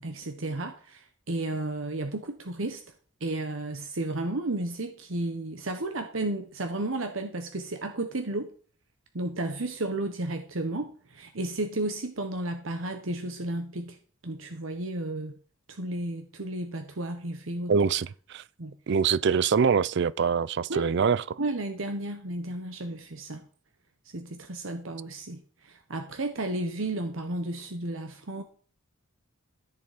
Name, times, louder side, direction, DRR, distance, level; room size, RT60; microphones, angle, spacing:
voice 1, 0.0-2.8 3.2-8.5 9.1-14.0 14.2-15.3 15.7-17.7 18.6-18.7 20.7-20.9 21.4-23.4 24.1-28.4, right 2 dB, 75° right, 1.2 m, -33 dB
voice 2, 17.7-18.4 18.9-21.4, right 6 dB, 55° right, 0.4 m, -24 dB
14.0 x 6.8 x 5.1 m
head